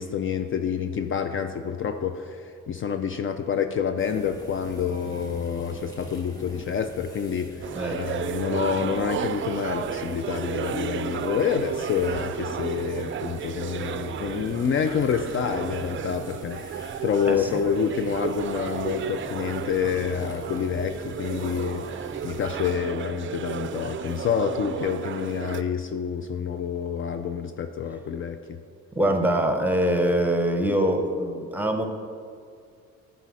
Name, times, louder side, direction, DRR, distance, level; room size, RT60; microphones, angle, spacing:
voice 1, 0.0-28.4, left 7 dB, 45° left, 8 dB, 0.4 m, -28 dB
sound 1, 4.0-22.7, equal, 10° left, 1.4 m, -45 dB
sound 2, 7.6-25.6, right 8 dB, 40° right, 0.4 m, -33 dB
voice 2, 17.3-17.6 29.0-31.8, right 1 dB, 5° right, 4 dB, 0.8 m, -23 dB
9.8 x 4.2 x 4.9 m, 2.2 s
cardioid pair, 90°, 30 cm